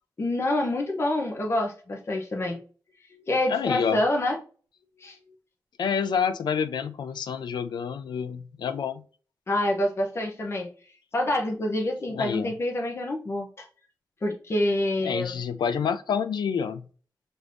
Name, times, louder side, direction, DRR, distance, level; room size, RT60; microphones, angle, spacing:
voice 1, 0.2-2.6 3.1-4.4 5.0-5.2 9.5-10.7 11.1-13.7 14.2-15.3, left 1 dB, 35° left, 0.8 m, -27 dB
voice 2, 3.5-4.0 5.8-9.0 12.1-12.6 15.0-16.9, left 7 dB, 90° left, 0.4 m, -28 dB
6.0 x 2.6 x 3.3 m
wide cardioid pair, 150°, 7 cm